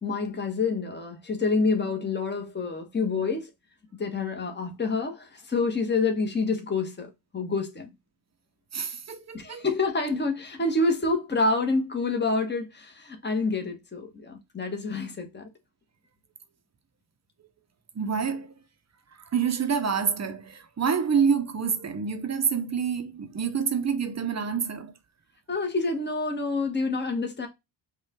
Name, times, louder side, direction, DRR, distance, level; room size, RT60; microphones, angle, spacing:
voice 1, 0.0-3.5 4.0-7.9 9.3-15.5 25.5-27.5, left 3 dB, 20° left, 1.4 m, -27 dB
voice 2, 8.7-9.6 17.9-18.5 19.3-24.9, right 6 dB, 30° right, 0.9 m, -27 dB
5.2 x 2.6 x 3.7 m
cardioid pair, 75°, 50 cm